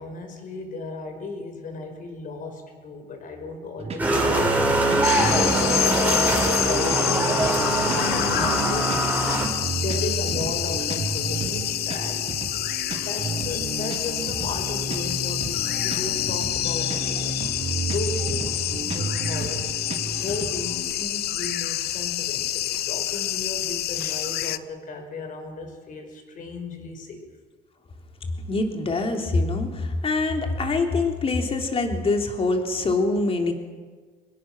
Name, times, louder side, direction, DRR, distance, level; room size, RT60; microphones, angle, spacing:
voice 1, 0.0-4.5 4.7-9.0 9.4-12.6 13.0-17.4 17.9-19.6 20.2-27.3, left 3 dB, 50° left, 5 dB, 5.3 m, -35 dB
sound 1, 3.8-20.9, right 3 dB, 35° right, 5.4 m, -32 dB
sound 2, 4.0-9.5, right 1 dB, 10° right, 6.3 m, -22 dB
sound 3, 5.0-24.6, left 13 dB, 70° left, 0.9 m, -28 dB
voice 2, 28.5-33.5, left 3 dB, 35° left, 3 dB, 3.4 m, -24 dB
25.0 x 21.0 x 6.2 m, 1.5 s
cardioid pair, 110°, 17 cm